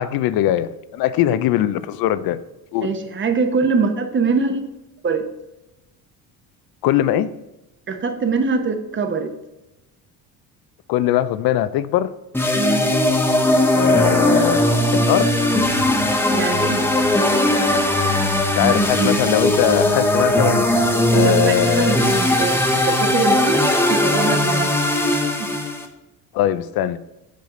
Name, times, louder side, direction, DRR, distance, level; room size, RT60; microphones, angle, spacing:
voice 1, 0.0-2.4 2.7-2.9 6.8-7.3 10.9-12.1 13.7-14.6 14.9-15.3 18.6-20.7 21.1-22.0 26.3-27.0, left 12 dB, 70° left, 0.5 m, -20 dB
voice 2, 2.8-4.7 5.0-5.3 7.9-9.3 12.5-12.8 16.3-16.9 21.1-24.7 25.4-25.5, right 4 dB, 30° right, 0.9 m, -23 dB
sound 1, 12.3-25.9, left 1 dB, 5° left, 0.8 m, -18 dB
7.4 x 5.8 x 3.7 m
cardioid pair, 115°, 37 cm